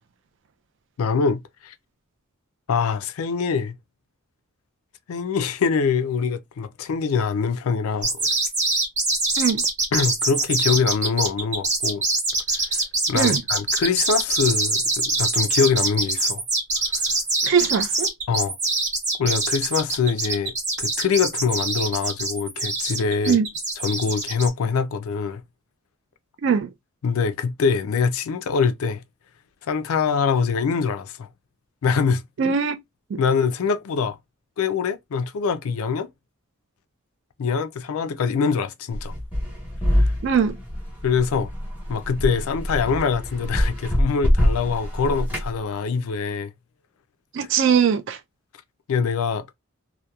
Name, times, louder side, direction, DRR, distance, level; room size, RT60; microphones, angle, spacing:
voice 1, 1.0-1.7 2.7-3.8 5.1-8.1 9.9-12.0 12.5-16.4 16.9-17.0 18.3-18.6 19.2-23.4 23.8-25.4 27.0-29.0 29.6-31.3 31.8-32.2 33.2-34.2 34.6-36.1 37.4-39.1 39.9-40.1 41.0-41.5 41.9-46.5 48.9-49.5, left 5 dB, 75° left, 0.4 m, -24 dB
sound 1, 8.0-24.5, right 2 dB, 35° right, 0.9 m, -24 dB
voice 2, 17.4-18.1 23.3-23.5 26.4-26.7 32.4-32.8 33.1-33.2 40.2-40.6 47.3-48.2, right 7 dB, 55° right, 0.3 m, -21 dB
sound 2, 38.9-45.5, equal, 10° right, 0.9 m, -24 dB
2.8 x 2.1 x 2.2 m
head